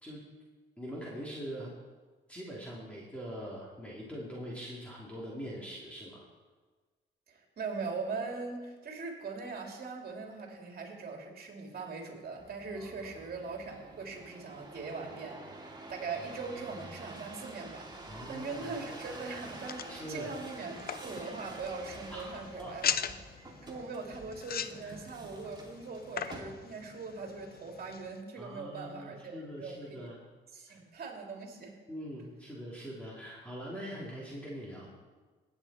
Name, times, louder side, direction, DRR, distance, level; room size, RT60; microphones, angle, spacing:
voice 1, 0.8-1.7 2.3-6.2 12.7-13.1 18.1-18.7 19.9-20.4 22.1-22.9 24.8-24.9 28.4-30.2 30.7-30.8 31.9-34.9, equal, 5° left, -6 dB, 3.1 m, -43 dB
voice 2, 7.3-23.1 23.6-30.1 30.5-31.8, right 4 dB, 50° right, 1 dB, 2.9 m, -41 dB
sound 1, 12.4-26.9 27.5-28.1, right 2 dB, 20° right, 2.6 m, -48 dB
sound 2, 18.4-28.2, left 8 dB, 50° left, 0.7 m, -41 dB
18.5 x 8.8 x 4.4 m, 1.4 s
cardioid pair, 90°, 20 cm